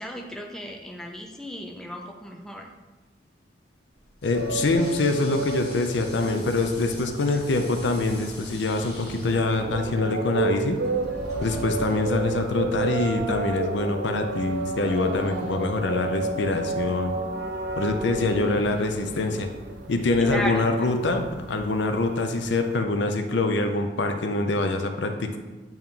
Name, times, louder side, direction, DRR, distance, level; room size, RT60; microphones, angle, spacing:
voice 1, 0.0-2.7 20.2-21.0, left 1 dB, 5° left, 1 dB, 0.4 m, -34 dB
Toilet flush, 3.9-13.3, left 2 dB, 60° left, 1.8 m, -45 dB
voice 2, 4.2-10.8 11.4-17.1 17.8-19.5 19.9-25.4, left 2 dB, 75° left, 6 dB, 0.6 m, -25 dB
sound 1, 4.3-22.8, right 3 dB, 75° right, 0.7 m, -32 dB
sound 2, 4.4-20.6 20.9-21.0, equal, 45° right, 1.1 m, -46 dB
8.8 x 3.0 x 3.7 m, 1.2 s
head